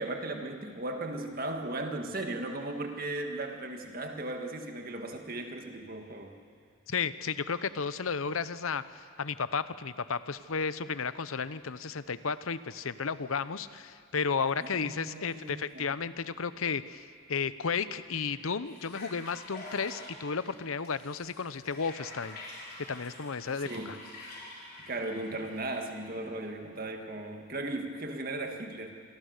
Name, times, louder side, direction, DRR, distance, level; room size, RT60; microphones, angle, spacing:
voice 1, 0.0-6.3 14.6-15.9 23.6-24.0 24.8-28.9, right 2 dB, 45° right, 4 dB, 1.9 m, -37 dB
voice 2, 6.9-22.4 22.9-24.0, left 5 dB, 85° left, 14 dB, 0.8 m, -33 dB
sound 1, 18.6-26.0, left 2 dB, 50° left, 5.6 m, -47 dB
27.0 x 23.0 x 6.7 m, 2.3 s
head